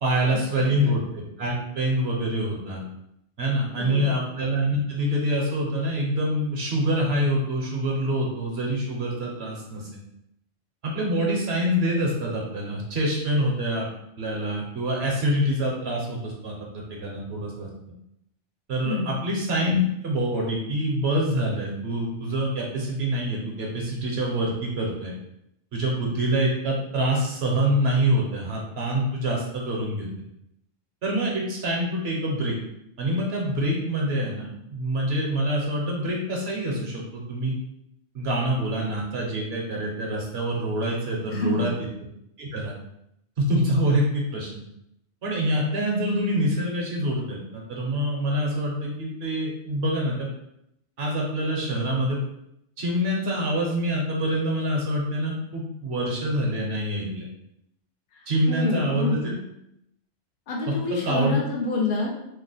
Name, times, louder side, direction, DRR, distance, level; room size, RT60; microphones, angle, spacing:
voice 1, 0.0-2.8 3.4-10.0 10.8-13.9 14.2-17.7 18.7-25.1 25.7-30.1 31.0-32.6 33.0-37.6 38.1-41.9 42.4-42.7 43.4-44.6 45.2-50.3 51.0-52.2 52.8-57.3 58.3-59.3 60.7-61.4, equal, 60° right, -2 dB, 1.0 m, -26 dB
voice 2, 0.6-0.9 3.7-4.2 18.8-19.2 41.3-41.7 58.1-59.4 60.5-62.2, left 2 dB, 50° left, -2 dB, 0.8 m, -28 dB
2.9 x 2.1 x 4.0 m, 0.79 s
omnidirectional pair, 1.3 m